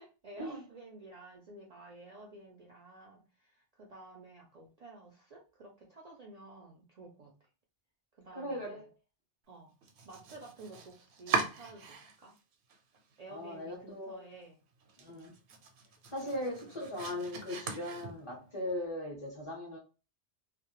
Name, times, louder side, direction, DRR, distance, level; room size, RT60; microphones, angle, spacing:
voice 1, 0.0-7.3 8.2-8.8 9.5-9.7 10.0-12.3 13.2-14.6 15.1-15.3 16.2-16.8, right 2 dB, 55° right, 0.4 m, -52 dB
voice 2, 8.3-8.9 13.3-14.2 15.0-15.3 16.1-19.8, left 1 dB, 35° left, 0.6 m, -39 dB
Domestic sounds home sounds, 9.8-12.4 12.7-13.4 13.8-13.9 14.3-14.4 14.8-18.5, right 5 dB, 80° right, 0.8 m, -39 dB
2.2 x 2.0 x 2.9 m
omnidirectional pair, 1.1 m